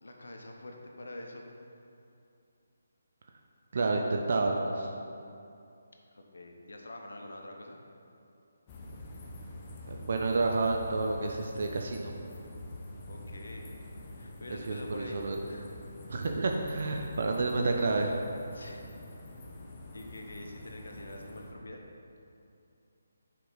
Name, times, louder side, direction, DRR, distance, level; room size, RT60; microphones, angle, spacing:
voice 1, 0.0-1.5 6.1-7.8 13.1-13.8 14.2-15.2 15.4-15.9 18.5-18.8 19.9-21.8, left 1 dB, 70° left, 2 dB, 0.9 m, -46 dB
voice 2, 3.7-4.9 9.9-12.1 14.7-15.4 16.1-18.2, right 3 dB, 55° right, 2 dB, 0.5 m, -29 dB
sound 1, 8.7-21.5, left 1 dB, 25° left, 0.8 m, -45 dB
6.7 x 4.7 x 3.9 m, 2.6 s
figure-of-eight pair, 150°, 0 cm